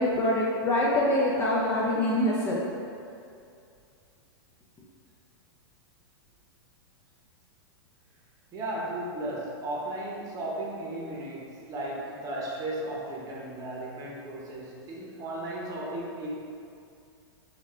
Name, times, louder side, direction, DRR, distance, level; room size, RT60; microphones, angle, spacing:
voice 1, 0.0-2.6, left 1 dB, 20° left, -5 dB, 0.4 m, -25 dB
voice 2, 8.5-16.3, right 1 dB, 25° right, -4 dB, 0.8 m, -35 dB
4.5 x 2.4 x 3.5 m, 2.5 s
hypercardioid pair, 140°, 13 cm